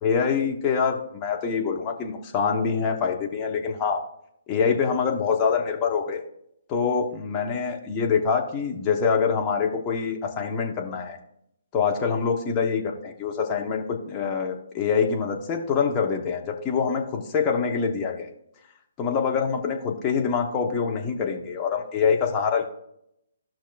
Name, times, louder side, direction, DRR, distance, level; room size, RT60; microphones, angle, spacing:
voice 1, 0.0-4.0 4.5-6.2 6.7-11.2 11.7-18.3 19.0-22.6, left 6 dB, 20° left, 1 dB, 1.1 m, -25 dB
15.0 x 5.9 x 2.4 m, 0.78 s
figure-of-eight pair, 135°, 0 cm